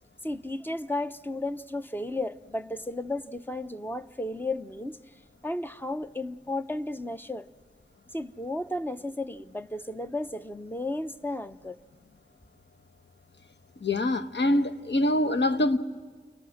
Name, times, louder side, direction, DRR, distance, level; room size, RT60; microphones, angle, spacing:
voice 1, 0.2-5.0 5.4-7.5 8.1-11.8, left 2 dB, 10° left, 0.8 m, -33 dB
voice 2, 13.8-15.8, left 1 dB, 75° left, 1.2 m, -24 dB
29.5 x 24.0 x 6.5 m
wide cardioid pair, 55°, 18 cm